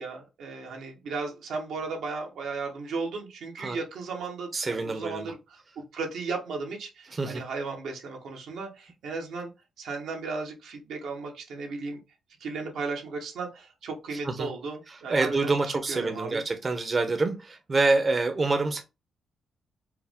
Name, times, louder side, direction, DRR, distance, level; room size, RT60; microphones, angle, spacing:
voice 1, 0.0-9.5 9.8-12.0 12.4-16.4, right 4 dB, 85° right, 1.2 m, -35 dB
voice 2, 4.5-5.3 7.1-7.4 14.2-14.5 15.1-18.8, right 3 dB, 35° right, 0.7 m, -26 dB
4.6 x 2.1 x 3.5 m
cardioid pair, 85°, 0 cm